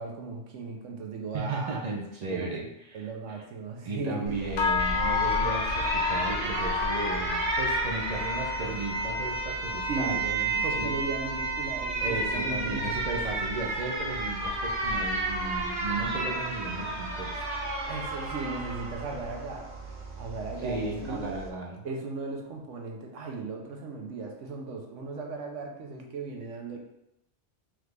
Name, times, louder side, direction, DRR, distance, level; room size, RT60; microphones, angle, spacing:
voice 1, 0.0-1.8 2.3-2.5 2.9-4.3 9.9-10.2 10.6-13.2 17.9-19.7 20.2-21.3 21.8-26.8, right 3 dB, 85° right, 1 dB, 1.0 m, -36 dB
voice 2, 1.3-3.4 3.8-11.0 12.0-17.6 20.6-21.8, right 3 dB, 50° right, -1 dB, 0.5 m, -35 dB
Alarm, 4.3-21.5, right 2 dB, 70° right, 1.1 m, -32 dB
sound 1, 4.6-14.1 14.4-14.9 15.3-15.6 16.1-16.2, left 7 dB, 85° left, 0.9 m, -33 dB
3.8 x 3.2 x 3.2 m, 0.84 s
omnidirectional pair, 1.2 m